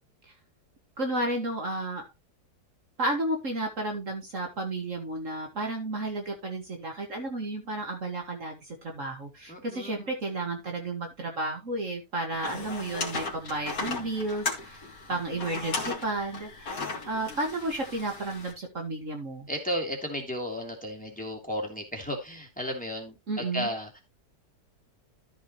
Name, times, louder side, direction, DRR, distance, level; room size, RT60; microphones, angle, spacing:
voice 1, 1.0-2.0 3.0-14.8 15.1-16.7 17.1-19.5 23.3-23.7, right 2 dB, 50° right, 2 dB, 2.1 m, -32 dB
voice 2, 9.5-10.1 12.5-12.7 19.5-24.0, equal, 5° left, 1 dB, 2.9 m, -34 dB
sound 1, 12.3-18.5, left 3 dB, 55° left, 2.6 m, -36 dB
13.5 x 6.4 x 3.0 m, 0.23 s
omnidirectional pair, 1.8 m